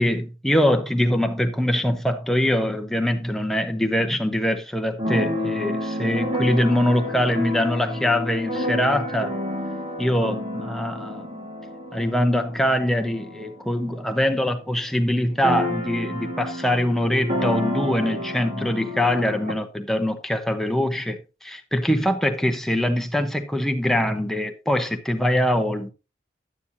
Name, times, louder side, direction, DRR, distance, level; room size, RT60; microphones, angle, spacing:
voice 1, 0.0-9.3 10.0-11.4 11.9-25.9, left 1 dB, ahead, 0.9 m, -23 dB
Keyboard (musical), 5.0-14.5 14.8-14.9 15.1-19.5, left 1 dB, 30° right, 1.7 m, -30 dB
11.5 x 9.1 x 2.7 m
head